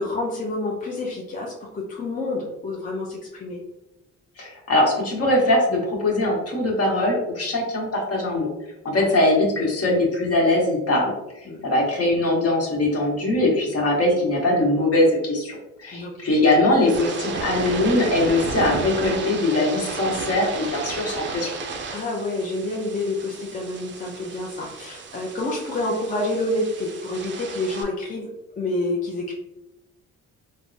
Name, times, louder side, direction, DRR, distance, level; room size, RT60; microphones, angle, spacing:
voice 1, 0.0-3.6 8.9-9.2 11.5-11.6 15.9-16.1 21.9-28.3 28.6-29.3, left 2 dB, 25° left, -2 dB, 0.5 m, -28 dB
voice 2, 4.4-8.5 8.8-11.1 11.4-21.5, left 1 dB, 50° left, -1 dB, 1.1 m, -21 dB
sound 1, 16.7-27.8, right 4 dB, 40° right, 0.5 m, -33 dB
3.3 x 2.1 x 2.6 m, 0.90 s
cardioid pair, 90°, 30 cm